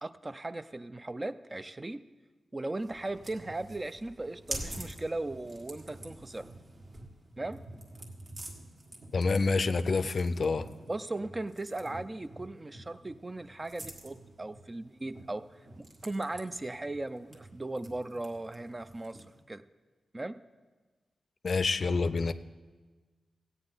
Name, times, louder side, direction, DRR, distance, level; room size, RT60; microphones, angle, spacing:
voice 1, 0.0-2.0 2.5-6.5 7.4-7.6 10.9-15.4 16.0-19.2 19.5-19.6 20.1-20.4, right 2 dB, 25° right, 12 dB, 0.3 m, -37 dB
sound 1, 2.8-19.4, right 1 dB, 50° right, 1.6 m, -47 dB
voice 2, 9.1-10.7 21.4-22.3, left 4 dB, 50° left, 13 dB, 0.4 m, -27 dB
16.0 x 8.9 x 3.9 m, 1.3 s
wide cardioid pair, 105°, 0 cm